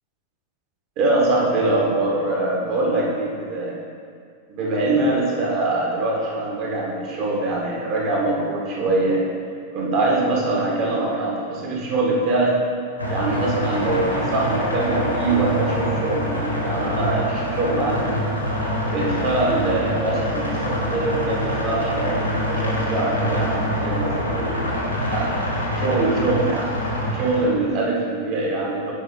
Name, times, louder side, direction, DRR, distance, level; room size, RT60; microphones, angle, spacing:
voice 1, 1.0-3.8 4.5-9.2 9.7-12.6 13.1-18.2 18.9-24.6 25.1-25.3 25.8-26.8 27.1-28.9, right 2 dB, 45° right, -3 dB, 1.7 m, -23 dB
sound 1, 13.0-27.4, equal, 90° left, 1.3 m, -25 dB
9.0 x 4.9 x 3.9 m, 2.2 s
figure-of-eight pair, 90°, 0 cm